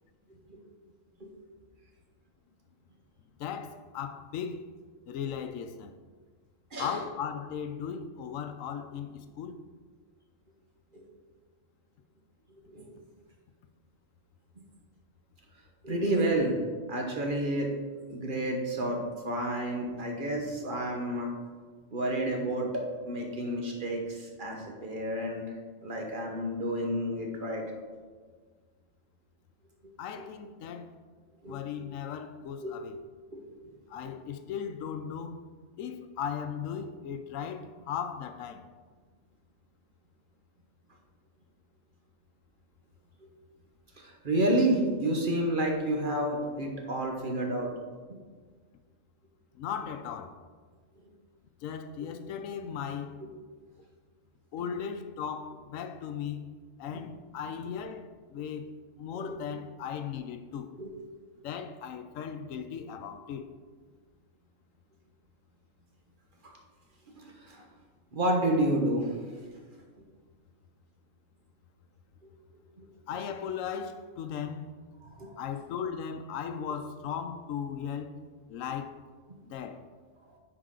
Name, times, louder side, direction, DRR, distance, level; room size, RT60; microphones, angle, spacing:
voice 1, 3.4-4.7 5.1-6.0 6.8-9.6 30.0-31.0 31.5-33.0 33.9-35.4 35.8-38.6 49.5-50.4 51.6-53.2 54.5-56.5 56.8-60.7 61.4-63.5 73.1-74.7 75.4-78.2 78.5-79.0 79.5-79.9, left 7 dB, 90° left, 1.0 m, -37 dB
voice 2, 15.8-16.6 16.9-17.7 18.1-21.3 21.9-25.6 25.8-27.6 29.8-30.2 31.4-31.6 32.6-32.8 33.3-33.7 43.2-43.3 44.0-47.7 53.2-53.3 56.9-57.0 59.1-59.4 60.8-60.9 66.4-66.6 67.1-67.6 68.1-69.2 72.8-72.9 75.0-75.4, right 1 dB, 40° right, 1.2 m, -30 dB
9.7 x 4.5 x 3.8 m
omnidirectional pair, 1.3 m